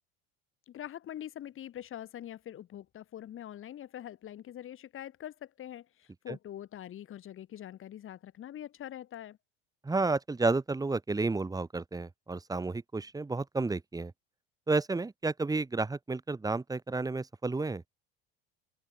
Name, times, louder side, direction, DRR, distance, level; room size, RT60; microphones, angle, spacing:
voice 1, 0.7-9.4, left 11 dB, 45° left, 2.1 m, -44 dB
voice 2, 9.8-14.1 14.7-17.8, right 3 dB, 10° right, 1.3 m, -31 dB
supercardioid pair, 90°, 30 cm